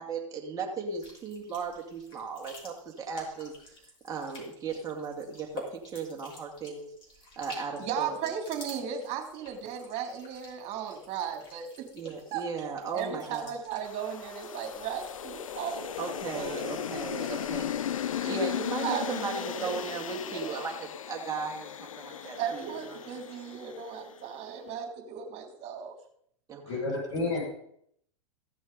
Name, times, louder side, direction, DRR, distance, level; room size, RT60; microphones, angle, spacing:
voice 1, 0.0-3.5 4.0-6.9 7.2-8.3 11.9-13.5 16.0-17.8 18.3-23.0 26.5-26.6, right 4 dB, 20° right, -1 dB, 2.5 m, -36 dB
sound 1, 0.9-18.8, left 2 dB, 30° left, 5.0 m, -50 dB
voice 2, 7.8-11.8 12.3-12.4 12.9-16.7 17.3-17.5 18.2-18.3 18.8-20.6 22.2-25.9, right 8 dB, 40° right, 4 dB, 3.1 m, -36 dB
sound 2, 13.8-24.2, left 9 dB, 85° left, 0.4 m, -36 dB
voice 3, 26.6-27.4, left 3 dB, 65° left, -4 dB, 5.8 m, -30 dB
15.5 x 6.2 x 5.4 m, 0.70 s
hypercardioid pair, 100°, 17 cm